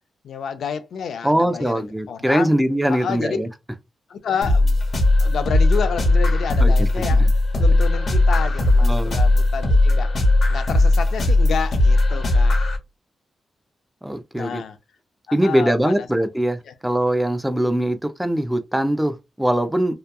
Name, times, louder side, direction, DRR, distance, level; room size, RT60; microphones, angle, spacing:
voice 1, 0.2-2.5 2.9-3.4 4.1-4.8 5.2-7.2 7.6-10.1 10.5-12.6 14.3-14.8 15.3-16.1 16.7-16.8, left 7 dB, 80° left, 0.4 m, -29 dB
voice 2, 1.2-3.5 6.6-7.3 8.8-9.1 14.0-14.6 15.3-19.9, right 1 dB, 5° right, 0.4 m, -22 dB
sound 1, 4.4-12.8, left 2 dB, 50° left, 0.8 m, -17 dB
2.8 x 2.2 x 2.2 m
wide cardioid pair, 130°, 0 cm